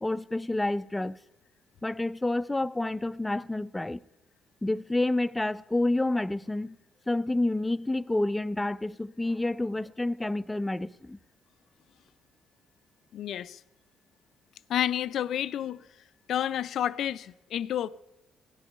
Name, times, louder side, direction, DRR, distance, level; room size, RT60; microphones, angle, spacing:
voice 1, 0.0-1.2 1.8-4.0 4.6-6.8 7.1-11.2, left 2 dB, 10° left, 0.5 m, -29 dB
voice 2, 13.1-13.6 14.7-15.8 16.3-17.9, left 10 dB, 70° left, 0.5 m, -30 dB
16.5 x 11.0 x 5.4 m
cardioid pair, 90°, 0 cm